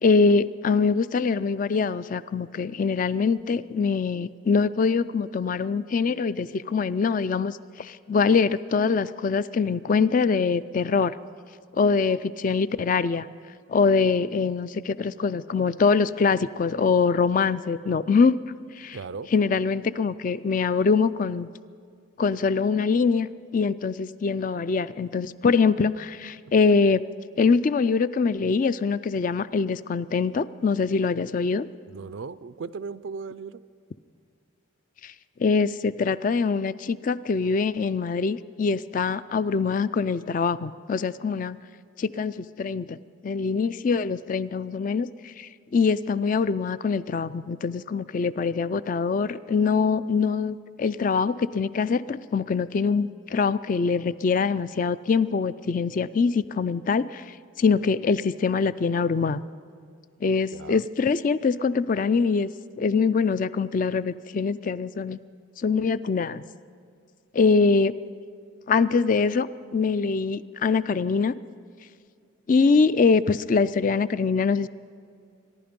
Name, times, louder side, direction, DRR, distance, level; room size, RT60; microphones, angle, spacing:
voice 1, 0.0-11.1 11.7-13.3 13.7-18.3 18.8-19.0 19.3-21.5 22.2-27.0 27.4-31.7 35.0-35.1 35.4-41.6 42.0-43.0 43.2-57.2 57.6-59.4 60.2-62.5 62.8-65.2 65.6-66.4 67.3-67.9 68.7-71.3 72.5-74.7, left 5 dB, 40° left, 15 dB, 0.3 m, -23 dB
voice 2, 18.9-19.3 31.9-33.6 60.5-60.8, right 5 dB, 65° right, 15 dB, 0.4 m, -37 dB
24.5 x 11.0 x 5.2 m, 2.3 s
head